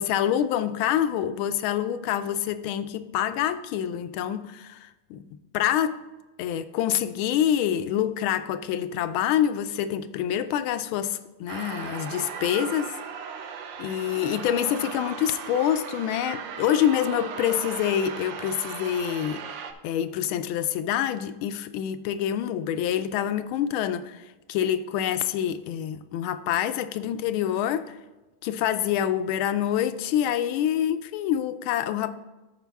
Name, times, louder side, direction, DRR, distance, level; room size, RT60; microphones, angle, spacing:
voice 1, 0.0-5.3 5.5-6.0 6.4-13.0 13.8-19.5 19.8-28.0 28.4-32.1, left 10 dB, 80° left, 1.4 m, -26 dB
sound 1, 11.5-19.7, right 7 dB, 70° right, 1.3 m, -37 dB
13.0 x 4.9 x 3.4 m
omnidirectional pair, 2.3 m